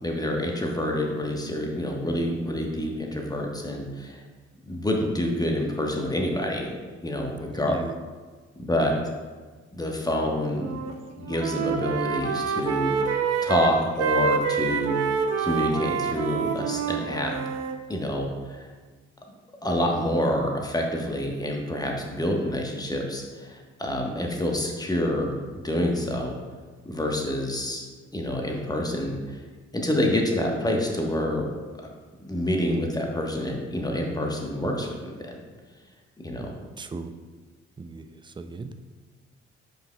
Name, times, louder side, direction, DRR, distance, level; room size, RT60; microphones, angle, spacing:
voice 1, 0.0-4.2 4.6-6.7 7.0-7.8 8.6-9.0 9.7-10.7 11.1-13.2 13.4-15.0 15.4-17.3 17.9-18.7 19.6-25.3 25.6-26.4 26.8-27.9 28.1-29.4 29.7-31.5 32.2-35.3 36.2-36.5, left 1 dB, 10° left, 1 dB, 1.2 m, -27 dB
voice 2, 7.5-8.0 36.8-37.1 37.8-38.7, right 3 dB, 15° right, 9 dB, 0.4 m, -37 dB
Wind instrument woodwind instrument, 10.5-10.9 11.2-17.8, right 6 dB, 50° right, 0.7 m, -27 dB
7.8 x 5.2 x 2.3 m, 1.4 s
figure-of-eight pair, 40°, 34 cm